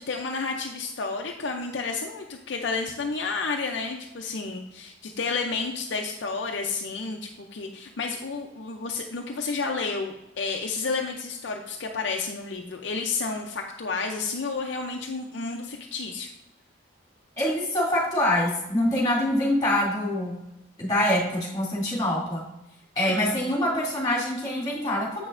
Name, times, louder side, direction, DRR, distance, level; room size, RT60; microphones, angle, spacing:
voice 1, 0.0-16.3 23.1-23.4, left 4 dB, 65° left, 2 dB, 0.6 m, -31 dB
voice 2, 17.4-20.4 20.8-22.5 23.0-25.3, left 1 dB, 20° left, -5 dB, 2.5 m, -25 dB
7.5 x 6.1 x 2.5 m, 0.89 s
head